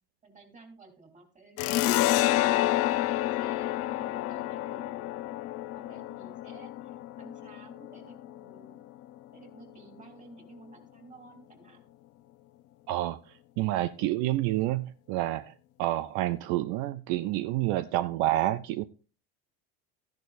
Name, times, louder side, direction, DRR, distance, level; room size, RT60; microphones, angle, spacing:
voice 1, 0.2-5.1 5.7-8.7 9.3-11.9, right 3 dB, 25° right, 3.4 m, -53 dB
sound 1, 1.6-8.8, left 15 dB, 50° left, 0.7 m, -29 dB
voice 2, 12.9-13.2 13.6-15.5 15.8-18.8, right 15 dB, 70° right, 0.6 m, -28 dB
13.5 x 10.5 x 2.5 m
supercardioid pair, 115°, 30 cm